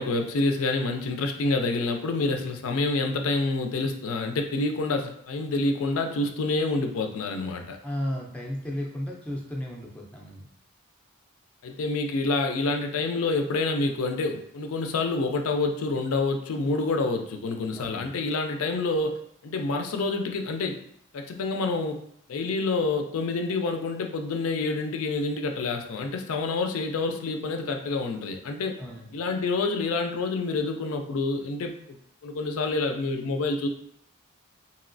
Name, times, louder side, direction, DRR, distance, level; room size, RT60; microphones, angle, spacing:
voice 1, 0.0-7.8 11.6-20.8 21.1-22.0 22.3-28.8 29.1-31.7 32.2-33.7, left 3 dB, 70° left, 5 dB, 0.4 m, -27 dB
voice 2, 7.8-10.4 17.8-18.0 28.8-29.1, left 1 dB, 5° left, -2 dB, 0.4 m, -34 dB
3.0 x 2.8 x 2.5 m, 0.68 s
head